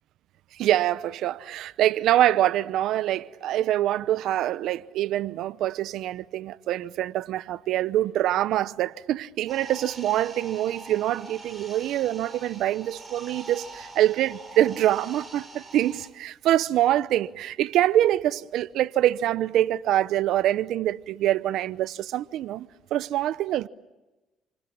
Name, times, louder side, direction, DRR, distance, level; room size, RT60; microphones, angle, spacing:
voice 1, 0.6-23.7, right 13 dB, 75° right, 0.9 m, -25 dB
sound 1, 9.5-16.1, right 2 dB, 20° right, 6.9 m, -44 dB
29.0 x 27.5 x 7.3 m
supercardioid pair, 85°, 0 cm